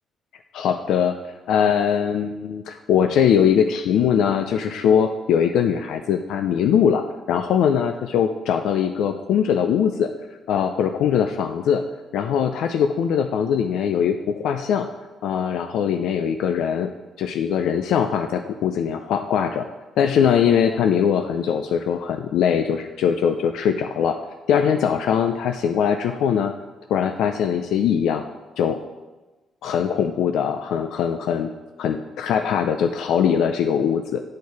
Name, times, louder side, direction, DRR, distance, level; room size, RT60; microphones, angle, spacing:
voice 1, 0.5-1.1 1.5-10.1 10.5-11.8 12.1-14.9 15.2-16.9 17.2-19.6 20.0-24.2 24.5-26.5 26.9-28.2 28.6-28.8 29.6-31.5 31.8-34.2, left 8 dB, 80° left, 6 dB, 0.4 m, -21 dB
8.4 x 4.5 x 4.7 m, 1.1 s
cardioid pair, 90°, 0 cm